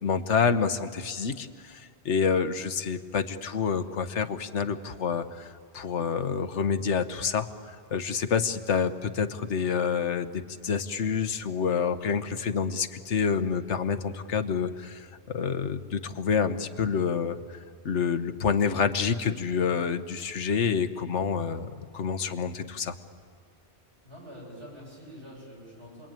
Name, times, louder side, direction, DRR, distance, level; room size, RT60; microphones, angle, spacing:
voice 1, 0.0-17.6 17.8-22.9, left 6 dB, 90° left, 10 dB, 1.4 m, -28 dB
voice 2, 24.0-26.1, equal, 65° right, -5 dB, 8.4 m, -45 dB
29.5 x 21.5 x 9.0 m, 2.1 s
omnidirectional pair, 1.2 m